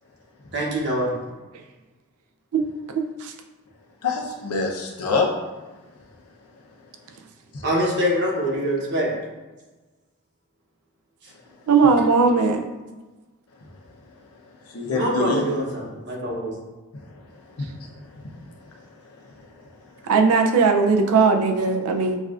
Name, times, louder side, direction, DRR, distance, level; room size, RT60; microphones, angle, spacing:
voice 1, 0.5-1.1 7.6-9.1 14.8-16.5, equal, 55° right, -2 dB, 0.9 m, -24 dB
voice 2, 2.5-3.3 11.7-12.6 20.0-22.2, right 4 dB, 90° right, 3 dB, 0.5 m, -19 dB
voice 3, 4.0-5.3 7.5-7.6 14.7-15.4 17.2-17.3 17.6-17.9 18.1-18.2 18.7-18.8, left 4 dB, 85° left, -1 dB, 0.8 m, -26 dB
6.1 x 2.5 x 2.5 m, 1.2 s
head